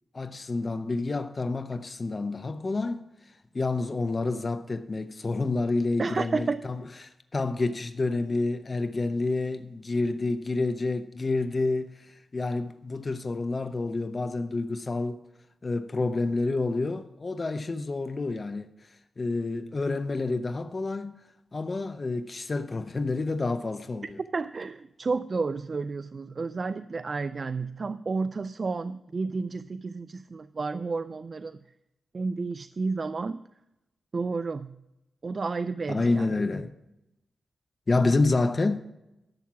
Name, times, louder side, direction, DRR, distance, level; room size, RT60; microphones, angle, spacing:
voice 1, 0.1-15.2 15.6-18.9 19.2-21.1 21.5-24.2 35.9-36.7 37.9-38.8, left 3 dB, 35° left, 0.6 m, -29 dB
voice 2, 6.0-6.6 24.3-31.6 32.1-33.4 34.1-34.8 35.2-36.3, right 4 dB, 45° right, 0.3 m, -31 dB
11.5 x 7.2 x 5.9 m
cardioid pair, 90°, 0 cm